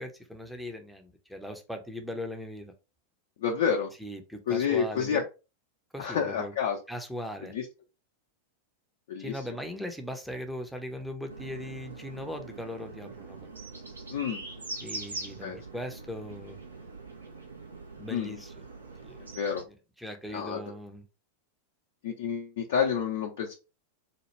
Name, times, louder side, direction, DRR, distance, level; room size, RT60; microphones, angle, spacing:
voice 1, 0.0-2.7 4.0-5.2 5.9-6.5 6.9-7.5 9.2-13.5 14.8-16.6 18.0-18.6 19.0-19.2 20.0-21.0, left 1 dB, ahead, 0.7 m, -39 dB
voice 2, 3.4-3.9 4.5-5.2 6.0-6.8 7.5-7.6 9.1-9.6 14.1-14.4 15.4-15.6 18.1-18.4 19.3-19.6 20.3-20.6 22.0-23.5, left 7 dB, 55° left, 0.6 m, -29 dB
sound 1, 11.3-19.6, right 3 dB, 75° right, 0.7 m, -43 dB
4.2 x 2.3 x 3.1 m
figure-of-eight pair, 90°, 0 cm